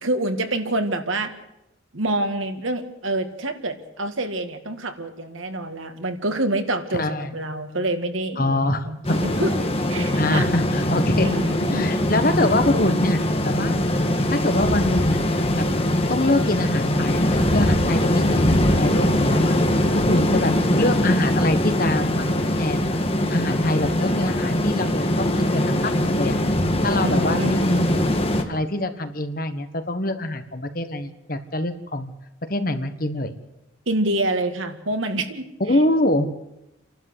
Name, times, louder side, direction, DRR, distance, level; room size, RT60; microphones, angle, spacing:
voice 1, 0.0-1.3 1.9-9.5 9.9-10.5 11.2-11.8 27.0-27.5 33.9-35.4, right 2 dB, 85° right, 7 dB, 2.1 m, -27 dB
voice 2, 6.9-7.4 8.4-9.2 10.0-11.3 11.7-13.9 14.3-15.2 15.5-15.7 16.1-19.5 19.9-22.9 23.3-26.3 26.8-28.0 28.5-32.1 32.5-33.3 35.6-36.3, left 1 dB, 45° left, 9 dB, 1.5 m, -24 dB
sound 1, 9.0-28.4, left 1 dB, 30° left, 1.7 m, -22 dB
29.5 x 12.0 x 8.1 m, 0.88 s
head